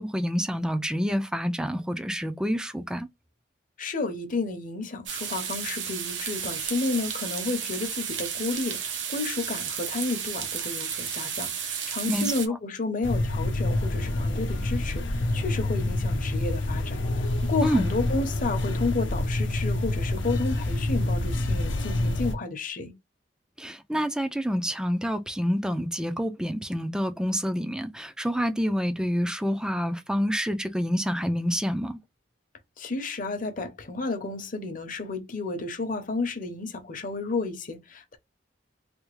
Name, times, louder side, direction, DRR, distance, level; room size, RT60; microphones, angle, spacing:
voice 1, 0.0-3.1 12.1-12.3 17.6-17.9 23.6-32.0, equal, 5° right, 0.4 m, -27 dB
voice 2, 3.8-8.8 9.1-22.9 32.8-38.2, left 3 dB, 45° left, 0.8 m, -31 dB
sound 1, 5.1-12.5, right 8 dB, 70° right, 0.7 m, -33 dB
sound 2, 13.0-22.3, left 1 dB, 80° left, 0.7 m, -27 dB
3.4 x 2.2 x 3.1 m
head